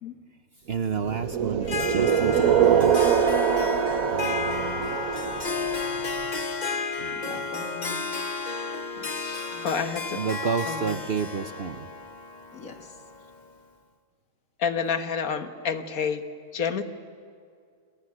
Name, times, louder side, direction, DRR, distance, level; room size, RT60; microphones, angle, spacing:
voice 1, 0.7-3.2 4.1-5.0 7.0-7.2 10.2-11.9, right 6 dB, 50° right, 9 dB, 1.0 m, -31 dB
sound 1, 1.1-6.0, right 8 dB, 80° right, 1.4 m, -23 dB
Harp, 1.6-13.5, left 4 dB, 35° left, 1.1 m, -32 dB
voice 2, 7.1-8.0 9.0-9.7 12.5-13.0, left 4 dB, 70° left, 5 dB, 2.4 m, -44 dB
voice 3, 9.2-10.2 10.7-11.0 14.6-16.2 16.5-16.8, left 6 dB, 85° left, 8 dB, 1.8 m, -29 dB
27.5 x 21.0 x 9.7 m, 2.3 s
omnidirectional pair, 1.5 m